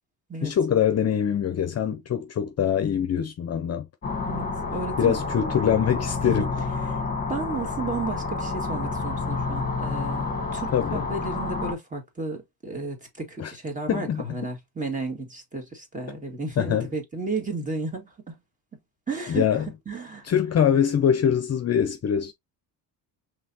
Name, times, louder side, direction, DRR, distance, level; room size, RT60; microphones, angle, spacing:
voice 1, 0.4-3.9 5.0-6.5 10.7-11.1 13.4-13.5 13.9-14.2 16.6-16.9 19.3-19.7 20.2-22.3, left 8 dB, 40° left, 0.6 m, -23 dB
sound 1, 4.0-11.7, left 4 dB, 25° left, 1.4 m, -29 dB
voice 2, 4.3-5.2 6.2-6.5 6.8-7.0 7.3-18.4 19.1-20.3, right 3 dB, 20° right, 2.0 m, -33 dB
5.5 x 3.4 x 2.8 m
cardioid pair, 125°, 39 cm